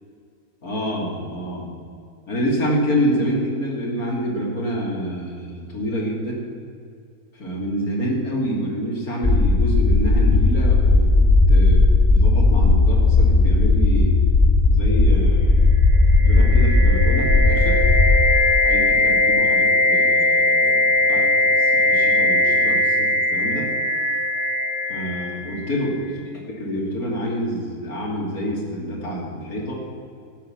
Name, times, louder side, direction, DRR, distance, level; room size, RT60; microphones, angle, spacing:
voice 1, 0.6-1.7 2.3-6.4 7.4-14.2 14.7-15.7 16.2-17.8 18.6-21.3 21.6-23.7 24.9-26.1 26.6-29.8, equal, 60° left, -3 dB, 3.3 m, -27 dB
sound 1, 9.2-18.2, left 3 dB, 25° left, 0.5 m, -16 dB
sound 2, 15.9-25.8, left 1 dB, 80° right, 2.0 m, -20 dB
13.0 x 8.7 x 7.3 m, 2.4 s
omnidirectional pair, 1.7 m